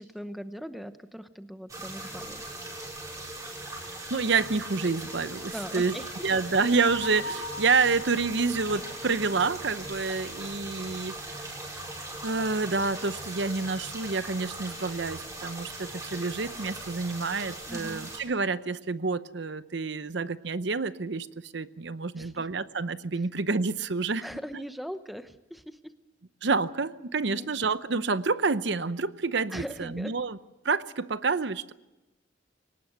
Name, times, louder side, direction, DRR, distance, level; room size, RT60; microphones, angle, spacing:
voice 1, 0.0-2.4 5.5-6.3 17.7-18.1 22.1-22.5 23.1-23.3 24.2-25.9 27.2-27.5 29.5-30.1, equal, ahead, 10 dB, 0.9 m, -40 dB
sound 1, 1.7-18.2, right 1 dB, 15° right, 5.5 m, -40 dB
voice 2, 4.1-5.9 6.2-11.4 12.2-21.3 21.5-24.3 26.4-30.4 30.6-31.7, right 4 dB, 65° right, 14 dB, 0.8 m, -28 dB
Bell, 6.9-10.5, left 2 dB, 85° left, 5.0 m, -42 dB
23.0 x 19.0 x 8.0 m, 0.99 s
head